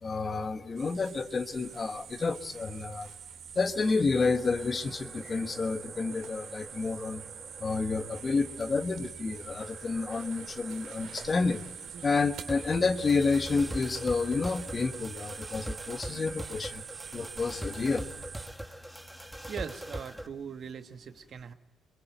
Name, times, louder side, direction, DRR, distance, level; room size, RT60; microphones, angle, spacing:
voice 1, 0.0-3.1 3.5-7.2 7.6-11.6 12.0-16.8 17.1-18.1, left 4 dB, 35° left, 9 dB, 1.4 m, -30 dB
sound 1, 0.8-18.5, right 8 dB, 75° right, 2.4 m, -45 dB
sound 2, 4.2-20.3, right 1 dB, 5° right, 1.6 m, -44 dB
voice 2, 19.5-21.5, right 7 dB, 55° right, 8 dB, 1.5 m, -40 dB
22.5 x 22.5 x 9.3 m, 1.1 s
cardioid pair, 90°, 0 cm